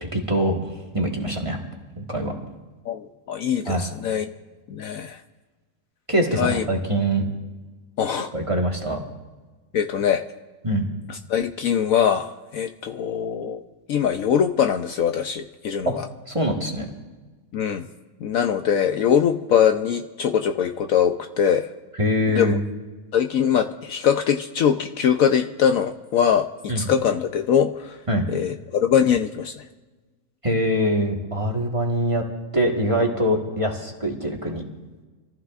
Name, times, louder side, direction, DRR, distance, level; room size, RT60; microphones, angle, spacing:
voice 1, 0.0-1.6 2.0-2.3 3.6-3.9 6.1-7.2 8.3-9.0 10.6-10.9 15.8-16.0 16.3-16.9 22.0-22.6 26.7-26.9 28.1-28.2 30.4-32.2 32.5-34.6, equal, 20° right, 0 dB, 1.5 m, -23 dB
voice 2, 2.8-4.3 4.7-5.2 6.4-6.6 8.0-8.3 9.7-10.2 11.1-13.6 13.9-16.0 17.5-17.9 18.2-21.7 22.3-22.6 23.1-28.0 28.3-29.6, left 8 dB, 65° left, 6 dB, 1.0 m, -22 dB
27.0 x 15.0 x 2.5 m, 1.3 s
omnidirectional pair, 1.7 m